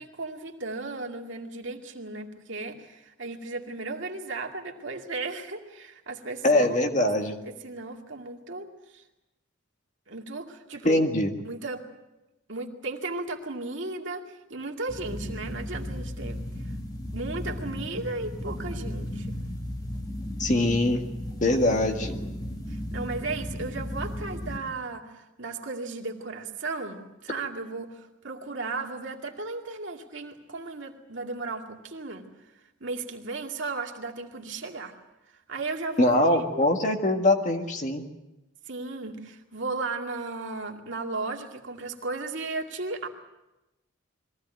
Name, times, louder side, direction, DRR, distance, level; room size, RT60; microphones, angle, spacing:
voice 1, 0.0-7.1 7.5-8.7 8.9-9.0 10.1-11.0 11.4-11.8 12.5-16.5 17.1-19.4 22.7-32.2 32.8-34.9 35.5-36.7 38.7-43.1, right 3 dB, 65° right, 2 dB, 2.4 m, -35 dB
voice 2, 6.4-7.3 10.8-11.3 20.4-21.0 21.4-22.1 36.0-38.0, left 1 dB, 35° left, 4 dB, 1.8 m, -22 dB
sound 1, 14.9-24.6, left 1 dB, 20° left, 1.8 m, -35 dB
22.0 x 16.5 x 9.1 m, 1.0 s
head